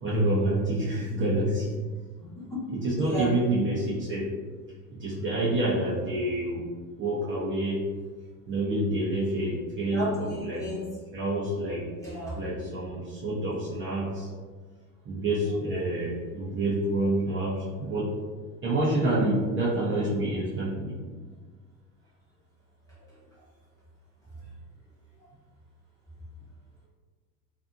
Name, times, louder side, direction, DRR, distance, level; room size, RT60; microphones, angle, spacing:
voice 1, 0.0-1.7 2.7-4.3 4.9-6.7 7.0-7.8 8.5-10.7 11.1-11.8 12.3-14.3 15.0-18.1 18.6-21.0, right 1 dB, 30° right, -7 dB, 0.6 m, -27 dB
voice 2, 2.2-3.3 9.9-10.8 12.0-12.4 15.7-15.8 23.0-23.1, equal, 5° left, -8 dB, 0.9 m, -34 dB
2.6 x 2.5 x 2.4 m, 1.4 s
hypercardioid pair, 110°, 44 cm